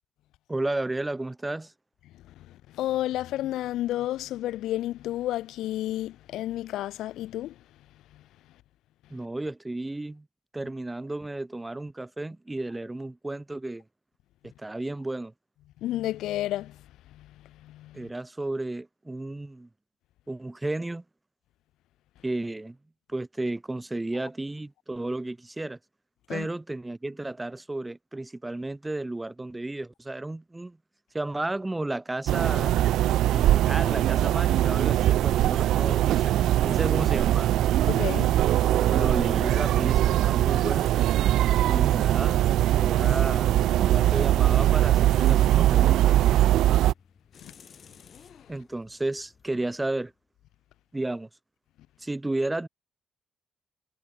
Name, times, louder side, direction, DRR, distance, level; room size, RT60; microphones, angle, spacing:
voice 1, 0.5-1.7 9.1-10.3 10.5-13.8 14.6-15.3 17.9-19.7 20.3-21.0 22.2-22.8 23.1-25.8 26.3-30.8 31.1-32.8 33.3-36.4 36.6-37.5 38.6-40.9 41.7-42.4 42.8-43.5 43.8-46.1 48.5-50.1 50.9-51.3 52.0-52.7, right 2 dB, 15° right, 0.4 m, -33 dB
voice 2, 2.2-7.6 8.1-8.2 15.8-18.1 26.3-26.5 37.9-38.6 47.4-47.6, left 14 dB, 85° left, 0.3 m, -32 dB
sound 1, 32.3-46.9, right 13 dB, 80° right, 0.3 m, -21 dB
sound 2, 38.2-50.3, left 6 dB, 50° left, 3.8 m, -55 dB
cardioid pair, 75°, 0 cm